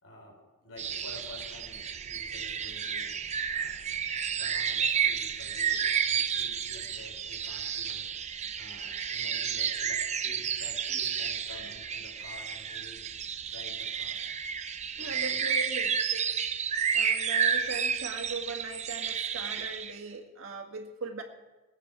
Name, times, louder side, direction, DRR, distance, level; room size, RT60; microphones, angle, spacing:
voice 1, 0.0-3.1 3.5-3.8 4.3-13.0 13.4-14.3 15.0-15.6 16.1-16.2, left 1 dB, 80° left, 1 dB, 4.2 m, -49 dB
sound 1, 0.8-20.0, right 7 dB, 35° right, 0.6 m, -31 dB
voice 2, 15.0-15.9 16.9-21.2, right 3 dB, 80° right, 3 dB, 1.8 m, -39 dB
20.0 x 8.6 x 6.0 m, 1.2 s
head